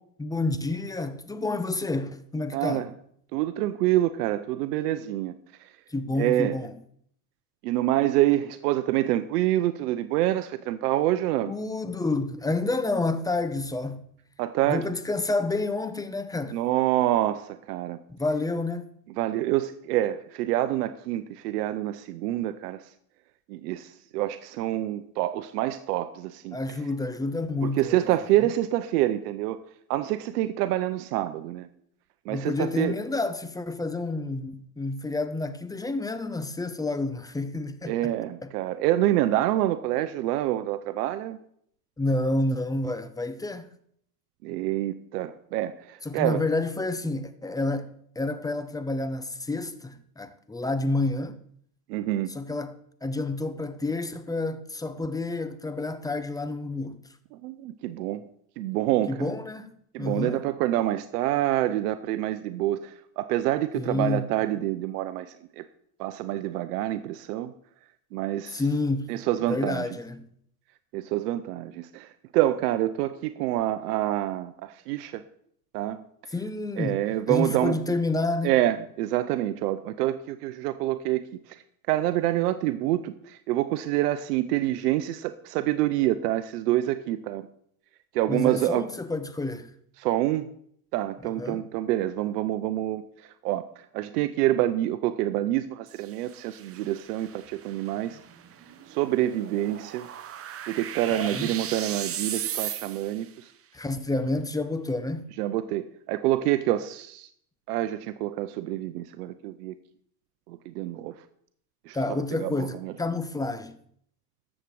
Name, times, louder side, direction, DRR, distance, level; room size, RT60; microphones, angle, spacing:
voice 1, 0.2-2.9 5.9-6.7 11.5-14.1 14.7-16.6 18.1-18.9 26.5-28.1 32.3-38.1 38.4-38.5 42.0-43.7 46.0-51.4 52.3-57.0 59.1-60.4 63.7-64.3 68.5-69.1 69.5-70.3 76.3-78.5 88.3-89.7 91.4-91.6 101.1-101.5 103.7-105.3 111.9-113.8, left 2 dB, 10° left, 0.7 m, -29 dB
voice 2, 2.5-2.9 3.3-5.3 5.6-5.7 6.2-6.6 7.6-11.5 14.4-14.9 16.5-18.0 19.1-22.8 23.5-26.6 27.6-29.6 29.9-31.7 32.3-32.9 37.9-41.4 44.4-46.4 51.9-52.3 57.3-58.3 58.6-59.3 59.9-65.6 66.0-67.5 68.1-68.6 69.1-69.9 70.9-75.2 75.7-76.0 76.8-77.8 78.4-81.6 81.9-87.5 88.1-88.8 90.0-90.5 90.9-93.0 93.4-98.2 98.9-100.1 100.7-103.5 105.4-107.3 107.7-109.7 110.5-111.2 111.9-112.0 112.4-112.9, right 14 dB, 80° right, 0.8 m, -27 dB
sound 1, 95.9-103.3, right 10 dB, 30° right, 0.9 m, -37 dB
13.0 x 7.4 x 4.7 m
supercardioid pair, 105°, 46 cm